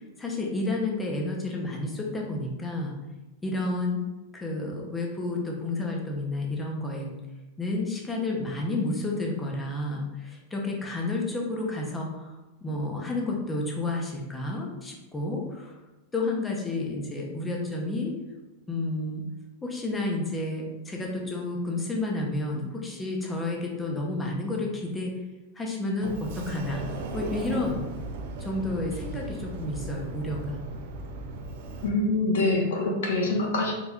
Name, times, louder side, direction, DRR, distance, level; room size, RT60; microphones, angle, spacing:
voice 1, 0.2-3.0 3.4-4.0 4.3-7.1 7.6-15.8 16.1-18.1 18.7-19.2 19.6-25.1 25.5-27.9 28.4-30.6, left 2 dB, 10° left, -1 dB, 0.6 m, -31 dB
Sliding door, 26.0-31.9, right 2 dB, 60° right, 0.5 m, -37 dB
voice 2, 31.8-33.7, left 2 dB, 90° left, 0 dB, 1.0 m, -25 dB
4.3 x 3.9 x 2.3 m, 1.1 s
supercardioid pair, 160°, 0 cm